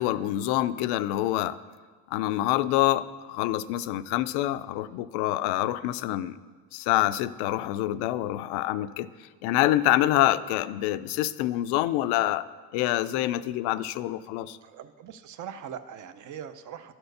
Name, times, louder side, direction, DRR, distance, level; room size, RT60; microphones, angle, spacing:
voice 1, 0.0-1.6 2.1-6.4 6.7-9.1 9.4-12.5 12.7-14.6, left 14 dB, 75° left, 15 dB, 0.5 m, -26 dB
voice 2, 14.6-16.9, right 8 dB, 50° right, 11 dB, 0.7 m, -41 dB
12.0 x 4.4 x 6.5 m, 1.5 s
supercardioid pair, 95°, 40 cm